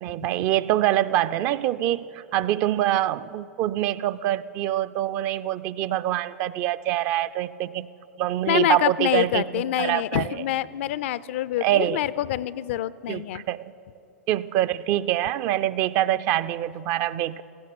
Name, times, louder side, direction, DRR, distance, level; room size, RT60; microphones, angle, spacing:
voice 1, 0.0-7.9 8.2-10.4 11.6-12.0 13.1-13.7 14.3-17.4, right 13 dB, 45° right, 14 dB, 0.4 m, -25 dB
voice 2, 8.5-13.4, left 13 dB, 60° left, 18 dB, 0.4 m, -26 dB
16.0 x 15.0 x 5.9 m, 2.6 s
hypercardioid pair, 100°, 7 cm